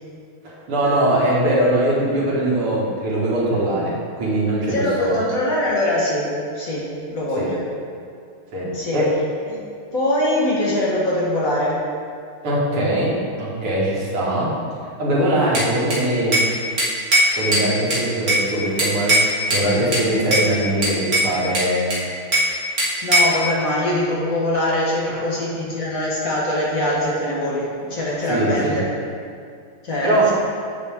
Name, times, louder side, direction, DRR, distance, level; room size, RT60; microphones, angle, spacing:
voice 1, 0.4-5.2 7.4-7.5 8.5-9.1 12.4-14.5 15.0-16.4 17.4-19.1 19.5-22.0 25.1-25.2 28.3-28.8 30.0-30.3, right 1 dB, 90° right, -6 dB, 2.8 m, -21 dB
voice 2, 4.7-6.3 6.5-6.8 7.1-7.6 8.7-9.0 9.5-9.6 9.9-11.7 23.0-28.9 29.8-30.3, left 1 dB, 45° left, -6 dB, 1.7 m, -22 dB
Bell / Glass, 15.5-16.5 16.8-18.5 18.8-19.7 19.9-20.5 20.8-22.5 22.8-23.4, right 1 dB, 35° right, 2.1 m, -19 dB
8.3 x 8.1 x 3.6 m, 2.3 s
omnidirectional pair, 2.4 m